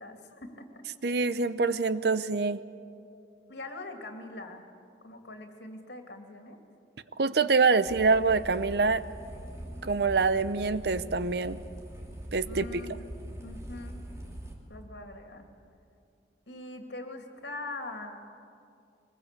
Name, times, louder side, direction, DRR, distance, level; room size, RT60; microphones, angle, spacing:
voice 1, 0.0-0.8 3.5-4.6 5.0-6.6 12.5-12.9 13.4-14.0 14.7-15.5 16.5-18.2, left 2 dB, 75° left, 4 dB, 2.6 m, -42 dB
voice 2, 1.0-2.6 7.2-9.0 9.8-11.6 12.3-12.7, right 4 dB, 65° right, 14 dB, 0.7 m, -25 dB
sound 1, 7.9-14.5, equal, 15° right, 2.9 m, -42 dB
23.5 x 20.5 x 8.3 m, 2.5 s
head